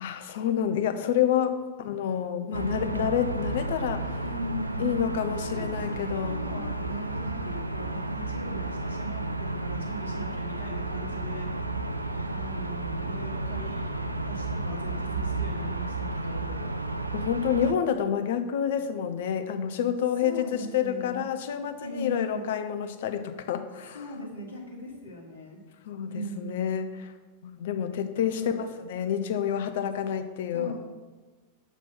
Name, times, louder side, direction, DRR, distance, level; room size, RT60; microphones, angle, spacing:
voice 1, 0.0-4.2 4.8-6.4 17.1-24.0 25.9-27.1 27.4-30.7, left 9 dB, 55° left, 8 dB, 0.5 m, -28 dB
voice 2, 2.5-3.1 4.2-5.0 5.5-11.5 12.3-13.9 14.2-16.7 20.2-21.2 21.8-22.5 23.9-25.6 26.1-26.7 28.2-28.6 30.5-30.7, equal, 70° left, -3 dB, 1.3 m, -39 dB
sound 1, 2.5-17.7, right 2 dB, 85° right, 0.3 m, -32 dB
6.8 x 3.0 x 5.7 m, 1.3 s
figure-of-eight pair, 90°, 0 cm